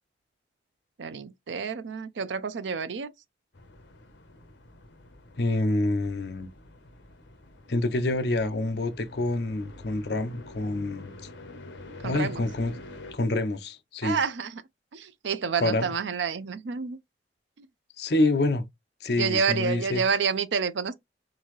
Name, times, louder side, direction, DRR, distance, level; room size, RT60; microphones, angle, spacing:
voice 1, 1.0-3.1 12.0-12.4 14.0-14.6 14.9-17.0 17.6-17.7 19.2-20.9, right 6 dB, 85° right, 0.5 m, -29 dB
sound 1, 3.5-13.1, left 2 dB, 80° left, 0.9 m, -47 dB
voice 2, 5.4-6.5 7.7-11.1 12.0-12.7 13.1-14.2 15.6-15.9 18.0-18.7 19.0-20.0, left 2 dB, 65° left, 0.6 m, -27 dB
3.9 x 2.7 x 3.1 m
head